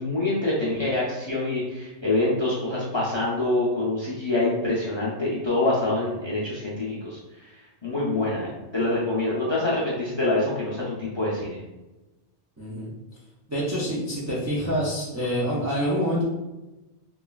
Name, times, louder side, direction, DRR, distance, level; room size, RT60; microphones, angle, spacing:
voice 1, 0.0-11.6, left 2 dB, 35° left, -7 dB, 0.5 m, -26 dB
voice 2, 12.6-12.9 13.5-16.2, equal, 30° right, -7 dB, 0.3 m, -26 dB
3.1 x 2.4 x 2.3 m, 1.0 s
omnidirectional pair, 1.2 m